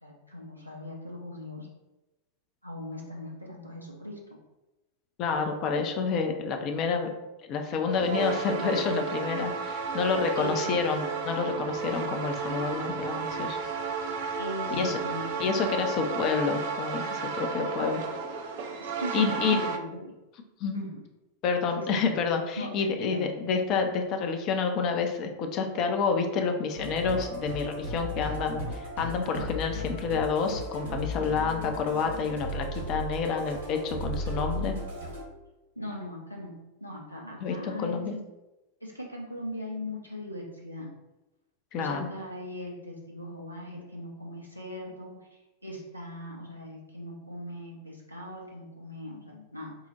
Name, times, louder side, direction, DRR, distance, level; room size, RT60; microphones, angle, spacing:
voice 1, 0.0-1.7 2.6-4.4 10.3-10.7 14.4-15.2 17.2-17.7 18.8-20.1 20.7-21.0 21.7-22.2 22.6-23.3 35.8-38.0 38.8-40.9 41.7-49.8, left 1 dB, 90° left, -2 dB, 0.5 m, -40 dB
voice 2, 5.2-7.1 7.5-13.7 14.7-15.0 15.4-18.0 19.1-19.7 20.6-20.8 21.4-34.7 37.4-38.2 41.7-42.1, left 5 dB, 35° left, 4 dB, 0.4 m, -29 dB
sound 1, 7.9-19.8, right 5 dB, 50° right, 0.3 m, -33 dB
Musical instrument, 26.8-35.2, left 1 dB, 70° right, 1.3 m, -35 dB
4.5 x 2.0 x 2.7 m, 1.0 s
figure-of-eight pair, 90°, 0 cm